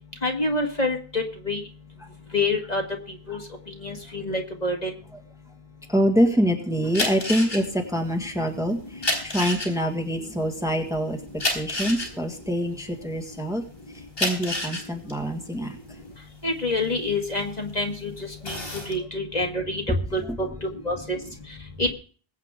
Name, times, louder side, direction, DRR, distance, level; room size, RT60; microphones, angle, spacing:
voice 1, 0.2-1.6 2.3-2.8 3.3-3.4 3.8-4.9 16.4-18.1 18.4-18.6 18.9-19.8 20.1-21.2 21.8-21.9, left 2 dB, 40° left, 2 dB, 1.9 m, -27 dB
voice 2, 5.9-11.2 11.5-13.6 14.2-15.8 20.2-20.3, equal, 5° right, 2 dB, 1.7 m, -25 dB
sound 1, 6.8-13.5 13.9-17.8 18.2-18.9, left 2 dB, 70° left, 3.8 m, -30 dB
22.0 x 8.3 x 3.7 m, 0.40 s
omnidirectional pair, 1.0 m